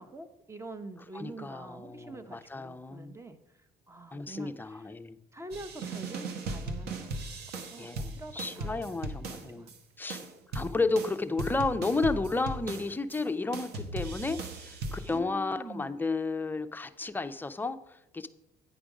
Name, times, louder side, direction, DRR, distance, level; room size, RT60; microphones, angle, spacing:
voice 1, 0.0-4.9 5.3-9.7 10.5-10.7 15.1-16.0, right 2 dB, 15° right, 10 dB, 0.8 m, -46 dB
voice 2, 1.1-3.1 4.1-5.2 7.8-9.7 10.0-10.2 10.5-18.3, left 3 dB, 10° left, 9 dB, 0.4 m, -32 dB
sound 1, 5.5-9.8 10.1-13.2 13.5-15.2, right 2 dB, 75° right, 1.0 m, -38 dB
9.0 x 5.1 x 4.8 m, 0.94 s
cardioid pair, 110°, 17 cm